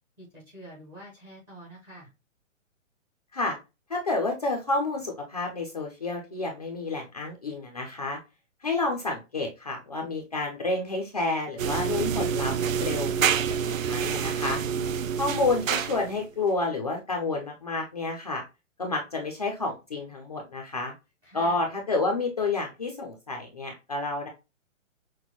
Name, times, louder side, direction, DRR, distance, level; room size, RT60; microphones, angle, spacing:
voice 1, 0.2-2.1 14.7-15.2 21.2-21.6, right 1 dB, 5° right, -7 dB, 0.7 m, -46 dB
voice 2, 3.9-8.2 8.6-12.5 12.8-13.1 13.6-14.6 15.2-18.4 18.8-20.9 21.3-24.3, left 3 dB, 30° left, 1 dB, 0.4 m, -29 dB
sound 1, 11.6-16.2, right 7 dB, 80° right, 0.6 m, -27 dB
6.1 x 2.1 x 2.9 m, 0.26 s
hypercardioid pair, 170°, 39 cm